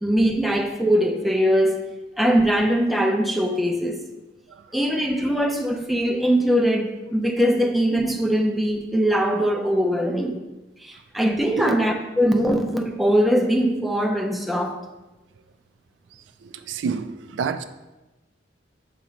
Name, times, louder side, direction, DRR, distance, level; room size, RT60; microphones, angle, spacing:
voice 1, 0.0-1.9 2.2-4.0 4.7-10.4 10.8-14.8, equal, ahead, 2 dB, 0.5 m, -21 dB
voice 2, 4.5-5.0 11.6-11.9 16.4-17.6, right 6 dB, 85° right, 11 dB, 0.3 m, -30 dB
6.7 x 3.0 x 5.0 m, 1.1 s
head